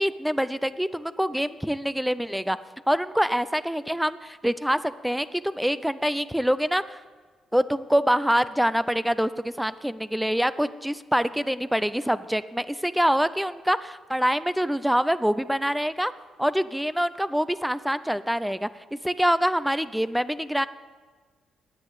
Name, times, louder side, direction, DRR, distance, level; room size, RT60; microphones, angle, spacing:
voice 1, 0.0-2.6 2.9-7.0 7.5-16.1 16.4-20.7, equal, 5° right, 15 dB, 0.4 m, -25 dB
9.5 x 8.2 x 8.0 m, 1.5 s
cardioid pair, 80°, 0 cm